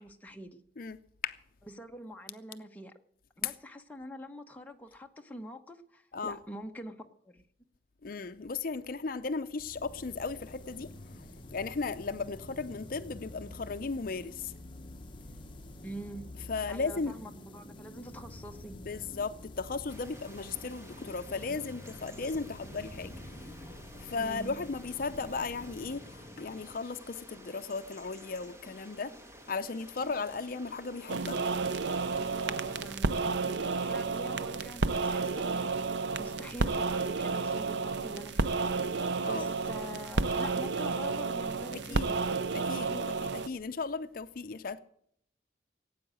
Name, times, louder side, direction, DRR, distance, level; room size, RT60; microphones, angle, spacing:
voice 1, 0.0-0.6 1.7-2.9 3.4-7.4 15.8-16.3 16.7-18.8 24.2-24.6 32.4-33.1 33.4-35.8 36.2-42.4, equal, 10° left, 1.0 m, -45 dB
voice 2, 0.8-1.4 3.4-3.5 6.1-6.4 8.0-14.5 16.5-17.1 18.7-29.1 29.5-31.4 39.2-39.5 41.9-42.1 42.5-44.8, left 4 dB, 55° left, 0.6 m, -36 dB
sound 1, 9.6-27.1, left 1 dB, 30° left, 1.1 m, -48 dB
sound 2, 19.9-33.0, equal, 15° right, 1.4 m, -52 dB
sound 3, 31.1-43.5, right 4 dB, 85° right, 0.6 m, -31 dB
17.5 x 8.8 x 7.6 m
head